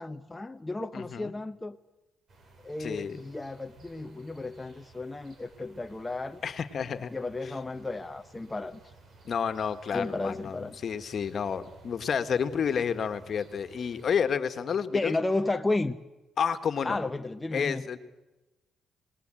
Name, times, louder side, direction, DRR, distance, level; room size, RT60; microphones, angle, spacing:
voice 1, 0.0-1.8 2.6-6.4 7.1-8.8 9.9-10.8 14.9-16.0 16.8-17.8, left 2 dB, 15° left, 7 dB, 0.8 m, -33 dB
voice 2, 0.9-1.3 2.8-3.2 6.4-7.1 7.4-7.5 9.2-15.1 16.4-17.0 17.5-18.0, left 7 dB, 55° left, 10 dB, 1.7 m, -30 dB
sound 1, 2.3-14.2, right 2 dB, 55° right, 7.8 m, -56 dB
27.5 x 20.0 x 9.1 m, 1.1 s
cardioid pair, 90°, 0 cm